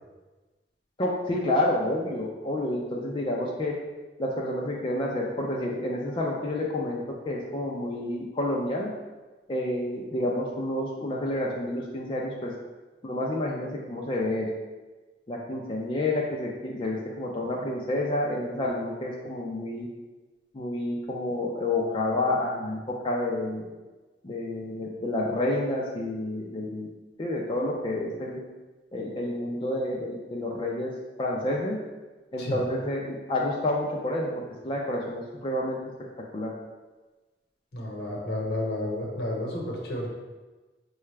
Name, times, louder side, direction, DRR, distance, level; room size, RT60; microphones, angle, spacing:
voice 1, 1.0-3.7 4.2-7.0 7.3-8.9 9.5-12.5 13.0-14.5 15.3-19.9 20.5-22.8 23.0-23.7 24.2-26.9 27.2-28.4 28.9-30.9 31.2-31.8 32.3-35.8 36.3-36.5, left 1 dB, 30° left, -3 dB, 0.4 m, -29 dB
voice 2, 37.7-40.1, left 1 dB, 65° left, -2 dB, 1.0 m, -31 dB
5.5 x 2.3 x 3.2 m, 1.2 s
head